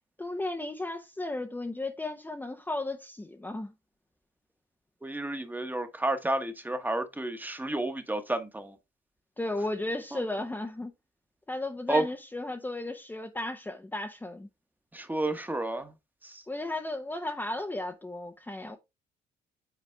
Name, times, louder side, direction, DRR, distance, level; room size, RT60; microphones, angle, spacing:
voice 1, 0.2-3.7 9.4-10.9 11.5-14.5 16.5-18.8, left 2 dB, 10° left, 0.8 m, -34 dB
voice 2, 5.0-8.8 10.1-10.2 11.9-12.1 14.9-15.9 16.2-16.4, right 1 dB, 10° right, 1.2 m, -31 dB
8.3 x 4.0 x 3.4 m
cardioid pair, 90°, 18 cm